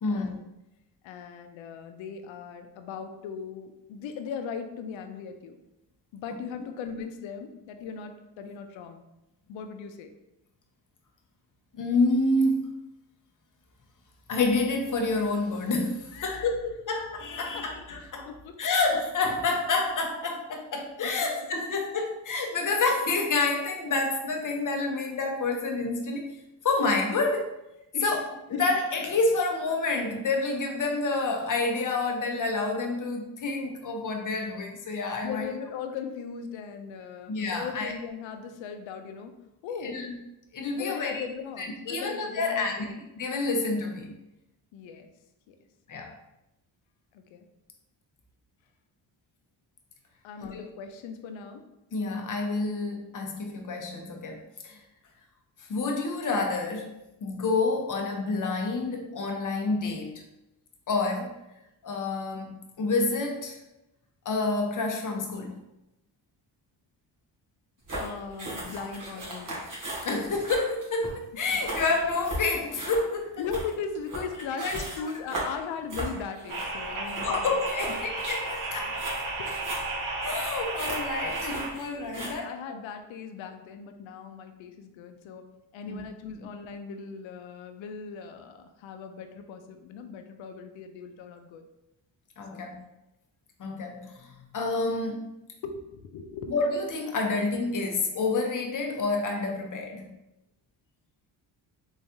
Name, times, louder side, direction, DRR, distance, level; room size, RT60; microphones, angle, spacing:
voice 1, 0.0-0.4 1.0-5.6 6.1-9.0 9.5-10.1 16.1-16.5 17.4-17.7 18.0-18.6 21.0-21.3 27.9-28.1 35.2-39.3 39.6-40.0 40.7-43.0 44.7-45.1 45.5-45.6 47.1-47.5 50.2-51.7 68.0-69.6 73.4-77.5 77.9-78.1 79.4-79.5 82.1-85.5 85.7-91.7 92.5-92.8 95.6-96.5, left 6 dB, 75° left, 7 dB, 0.6 m, -39 dB
voice 2, 11.7-12.7 14.3-18.3 18.6-26.2 26.6-27.6 28.0-35.5 37.3-37.9 39.8-40.2 40.5-41.2 41.6-42.8 43.1-44.1 45.9-46.1 50.4-50.7 51.9-54.8 55.6-60.2 60.9-61.4 61.8-63.6 64.2-65.6 70.0-73.4 74.6-74.8 77.2-79.0 80.2-82.4 85.8-86.0 92.4-92.8 93.6-95.3 96.5-100.1, left 3 dB, 40° left, 2 dB, 0.8 m, -28 dB
sound 1, 67.8-82.3, right 1 dB, 40° right, 1.4 m, -37 dB
sound 2, 76.5-81.7, right 3 dB, 80° right, 1.3 m, -33 dB
3.6 x 3.1 x 2.7 m, 0.91 s
cardioid pair, 70°, 47 cm